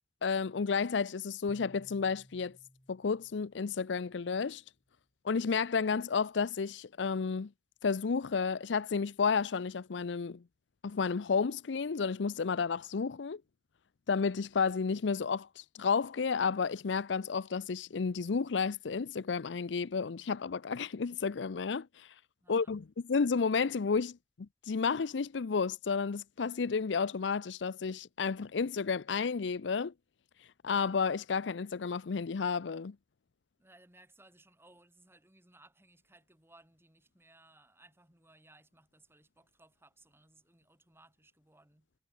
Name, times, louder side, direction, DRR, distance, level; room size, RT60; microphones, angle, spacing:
voice 1, 0.2-2.6 2.9-4.6 5.2-7.5 7.8-10.4 10.8-13.4 14.1-22.1 22.5-22.8 23.1-29.9 30.6-32.9, left 5 dB, 80° left, 0.5 m, -31 dB
sound 1, 1.5-4.8, equal, 15° left, 4.5 m, -61 dB
voice 2, 22.4-22.8 33.6-41.9, right 2 dB, 15° right, 5.4 m, -62 dB
head